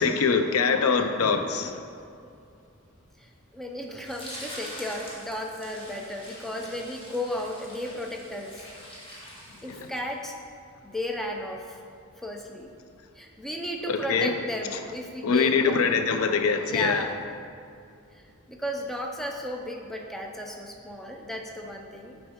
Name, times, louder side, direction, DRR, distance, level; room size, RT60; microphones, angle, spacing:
voice 1, 0.0-1.8 13.9-14.3 15.2-17.0, left 5 dB, 75° left, 7 dB, 0.4 m, -23 dB
voice 2, 3.2-8.6 9.6-10.4 10.8-11.8 12.2-12.7 13.1-15.8 16.6-17.2 18.1-22.2, left 1 dB, ahead, 1 dB, 0.4 m, -34 dB
sound 1, 4.0-10.1, equal, 25° left, 1.3 m, -44 dB
6.4 x 4.4 x 4.3 m, 2.4 s
head